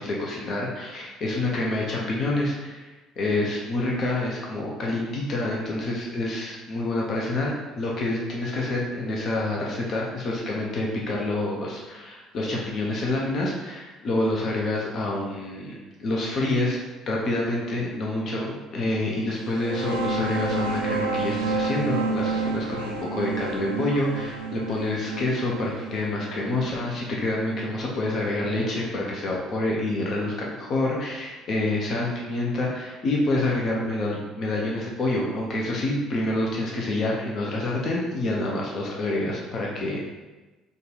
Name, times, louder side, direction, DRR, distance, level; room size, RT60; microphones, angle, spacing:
voice 1, 0.0-2.9 3.2-16.8 17.1-40.1, left 2 dB, 45° left, -2 dB, 0.7 m, -27 dB
sound 1, 19.4-28.7, right 3 dB, 80° right, 0.4 m, -30 dB
3.9 x 2.4 x 3.9 m, 1.2 s
figure-of-eight pair, 55°, 0 cm